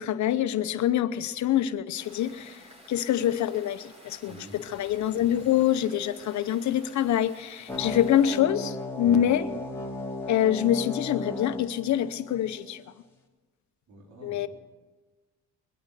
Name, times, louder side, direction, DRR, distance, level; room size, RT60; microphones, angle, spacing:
voice 1, 0.0-2.6 2.9-9.5 10.3-12.8 14.2-14.5, left 11 dB, 70° left, 0.9 m, -25 dB
sound 1, 2.0-8.4, equal, 20° right, 3.5 m, -52 dB
voice 2, 4.3-4.6 9.0-9.2 13.9-14.5, right 1 dB, 85° right, 4.1 m, -46 dB
sound 2, 7.7-12.7, left 2 dB, 10° left, 3.2 m, -36 dB
22.5 x 8.8 x 6.8 m
cardioid pair, 90°, 30 cm